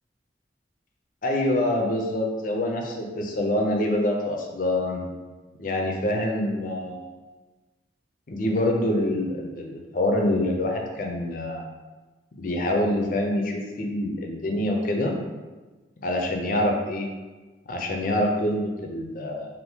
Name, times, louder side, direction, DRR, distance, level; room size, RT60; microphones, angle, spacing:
voice 1, 1.2-5.1 5.6-7.0 8.3-11.6 12.4-15.2 16.0-17.1 17.7-19.5, left 1 dB, 45° left, 1 dB, 0.5 m, -25 dB
2.7 x 2.6 x 3.4 m, 1.2 s
head